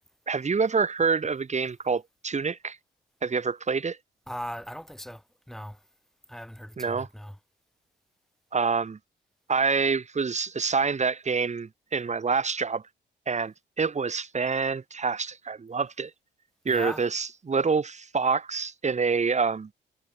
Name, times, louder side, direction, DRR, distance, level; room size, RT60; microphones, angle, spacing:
voice 1, 0.3-2.8 3.2-4.0 6.8-7.1 8.5-9.0 9.5-12.8 13.3-16.1 16.7-19.7, right 5 dB, 35° right, 7.4 m, -27 dB
voice 2, 4.3-5.2 5.5-5.8 6.3-7.4 16.7-17.0, equal, ahead, 6.4 m, -38 dB
cardioid pair, 90°, 20 cm